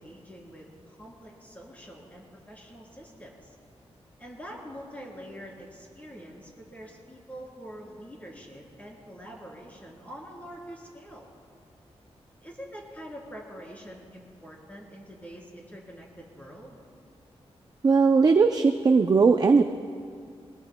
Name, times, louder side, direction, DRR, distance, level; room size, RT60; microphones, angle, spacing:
voice 1, 0.0-3.5 4.2-11.3 12.4-16.9, equal, 15° left, -3 dB, 3.3 m, -45 dB
voice 2, 17.8-19.6, right 4 dB, 35° right, 6 dB, 0.4 m, -19 dB
22.0 x 20.0 x 2.2 m, 2.2 s
wide cardioid pair, 130°, 11 cm